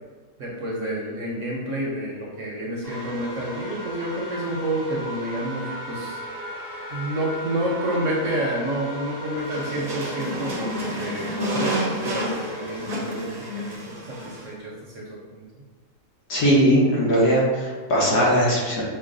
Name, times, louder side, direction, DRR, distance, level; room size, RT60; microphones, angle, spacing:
voice 1, 0.4-6.2 6.9-13.3 13.6-15.6, right 1 dB, 60° right, -3 dB, 0.9 m, -29 dB
sound 1, 2.8-13.8, equal, 55° left, 1.8 m, -37 dB
sound 2, 9.4-14.5, equal, 40° right, 0.6 m, -30 dB
voice 2, 16.3-18.8, equal, 70° left, -5 dB, 1.7 m, -19 dB
5.9 x 2.1 x 3.8 m, 1.4 s
omnidirectional pair, 1.8 m